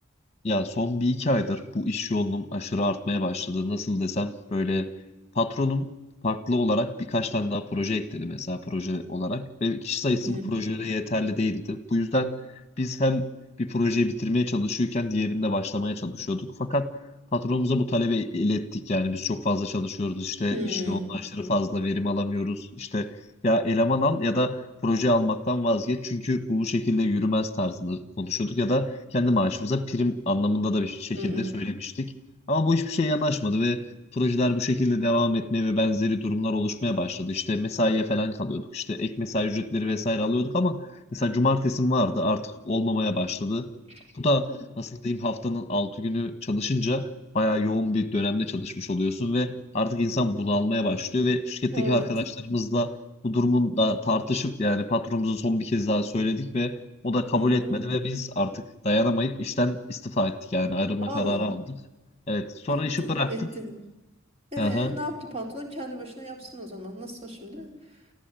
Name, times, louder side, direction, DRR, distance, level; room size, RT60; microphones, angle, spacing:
voice 1, 0.4-4.9 5.3-5.9 6.2-12.3 12.8-13.3 13.6-16.9 17.3-23.1 23.4-32.1 32.5-33.8 34.1-40.9 41.1-43.7 44.1-47.1 47.3-52.9 53.2-56.8 57.0-61.8 62.3-63.3 64.6-64.9, left 1 dB, 30° left, 11 dB, 1.4 m, -26 dB
voice 2, 20.5-21.1 31.1-31.6 43.9-44.0 44.5-44.6 51.7-52.1 57.3-57.8 61.0-61.5 62.7-63.7 64.5-67.7, equal, 30° right, 2 dB, 4.0 m, -34 dB
29.0 x 14.5 x 9.2 m, 1.1 s
head